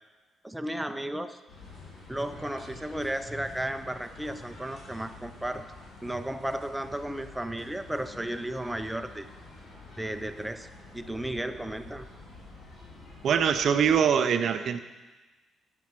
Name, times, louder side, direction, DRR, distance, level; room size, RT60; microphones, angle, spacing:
voice 1, 0.4-1.4 2.1-5.7 6.0-9.3 10.0-10.7 10.9-12.1, right 1 dB, 5° right, 8 dB, 0.5 m, -34 dB
sound 1, 1.5-14.1, left 3 dB, 60° left, 3.2 m, -48 dB
voice 2, 13.2-14.8, right 7 dB, 65° right, 11 dB, 0.6 m, -23 dB
7.6 x 7.5 x 6.1 m, 1.2 s
cardioid pair, 90°, 0 cm